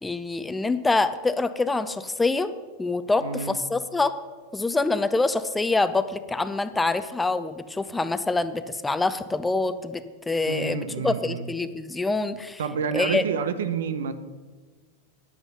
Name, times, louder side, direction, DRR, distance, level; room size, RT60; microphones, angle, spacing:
voice 1, 0.0-2.5 2.8-4.1 4.5-12.6 12.9-13.2, left 3 dB, 10° left, 11 dB, 0.6 m, -25 dB
voice 2, 3.2-3.6 10.5-11.5 12.6-14.1, right 6 dB, 75° right, 11 dB, 0.7 m, -29 dB
9.6 x 8.1 x 5.5 m, 1.4 s
hypercardioid pair, 95°, 0 cm